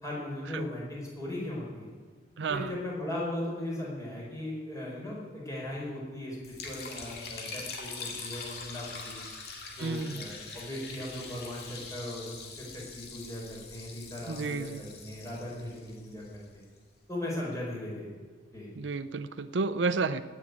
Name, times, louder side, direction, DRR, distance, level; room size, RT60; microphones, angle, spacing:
voice 1, 0.0-1.9 2.5-9.2 9.7-16.4 17.1-18.1 18.5-18.7, left 1 dB, 20° left, -5 dB, 4.8 m, -38 dB
voice 2, 2.4-2.7 9.8-10.2 14.3-14.8 18.8-20.2, right 4 dB, 75° right, 12 dB, 0.6 m, -31 dB
Liquid, 6.4-16.6, left 4 dB, 55° left, 2.3 m, -43 dB
16.5 x 7.0 x 9.8 m, 1.5 s
head